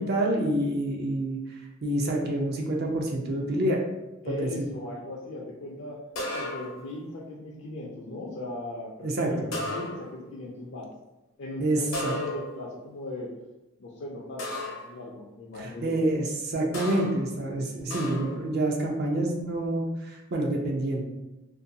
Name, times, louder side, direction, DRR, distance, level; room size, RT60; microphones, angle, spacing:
voice 1, 0.0-3.8 4.3-4.6 9.0-9.5 11.6-12.1 15.6-21.0, right 1 dB, 50° right, 0 dB, 0.5 m, -27 dB
voice 2, 4.2-6.0 6.3-10.9 11.4-13.3 13.8-16.0, left 2 dB, 60° left, -4 dB, 0.4 m, -38 dB
sound 1, 6.2-6.9 9.5-10.3 11.9-12.7 14.4-15.0 16.7-17.2 17.9-18.4, left 1 dB, 80° left, 0.8 m, -34 dB
2.5 x 2.2 x 2.6 m, 1.0 s
head